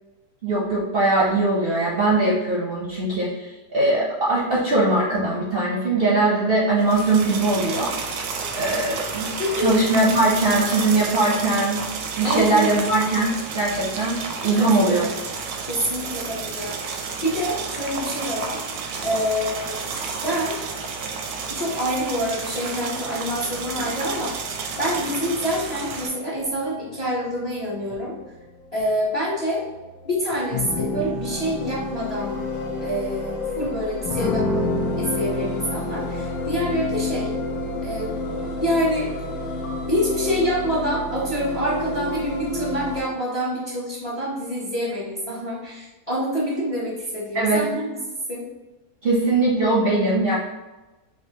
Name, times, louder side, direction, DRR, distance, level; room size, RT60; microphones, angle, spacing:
voice 1, 0.4-8.2 8.6-9.3 9.6-11.8 12.2-15.1 47.3-47.6 49.0-50.3, right 2 dB, 55° right, -5 dB, 0.7 m, -21 dB
sound 1, 6.8-26.1, right 5 dB, 75° right, 1.1 m, -31 dB
voice 2, 9.4-9.7 12.2-12.7 14.5-14.9 15.6-18.6 19.0-19.9 20.2-20.5 21.5-28.1 28.7-29.6 30.0-32.4 32.8-34.7 35.0-37.3 37.8-38.2 38.6-39.1 39.9-48.0 48.3-48.4, equal, 35° left, -6 dB, 0.6 m, -26 dB
sound 2, 24.7-43.0, left 2 dB, 70° left, 1.2 m, -30 dB
4.8 x 2.6 x 2.8 m, 1.1 s
omnidirectional pair, 1.7 m